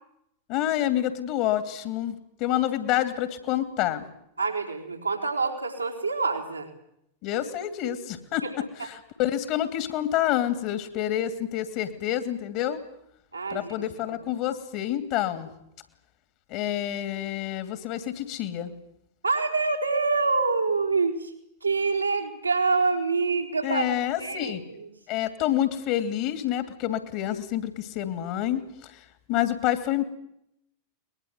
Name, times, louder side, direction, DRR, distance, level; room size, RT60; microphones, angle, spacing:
voice 1, 0.5-4.0 7.2-12.8 13.5-15.5 16.5-18.7 23.6-24.6 25.1-30.0, left 12 dB, 45° left, 11 dB, 2.8 m, -28 dB
voice 2, 4.4-6.7 8.4-8.5 13.3-13.7 19.2-21.3 21.6-23.8 24.2-24.9, right 4 dB, 80° right, 3 dB, 4.6 m, -26 dB
23.0 x 21.5 x 9.6 m, 0.78 s
figure-of-eight pair, 90°, 0 cm